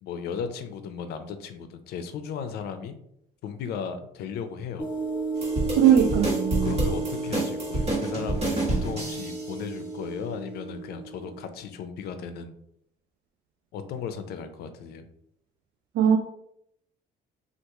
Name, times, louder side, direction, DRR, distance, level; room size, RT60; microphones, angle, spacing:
voice 1, 0.0-3.0 3.4-4.9 6.6-12.6 13.7-15.0, left 6 dB, 70° left, 9 dB, 0.5 m, -36 dB
sound 1, 4.8-11.5, right 3 dB, 5° right, 0.6 m, -33 dB
sound 2, 5.4-9.5, right 2 dB, 35° right, 1.5 m, -29 dB
voice 2, 5.8-6.7 16.0-16.2, right 9 dB, 80° right, 3 dB, 0.4 m, -20 dB
2.9 x 2.4 x 3.4 m, 0.74 s
cardioid pair, 110°, 17 cm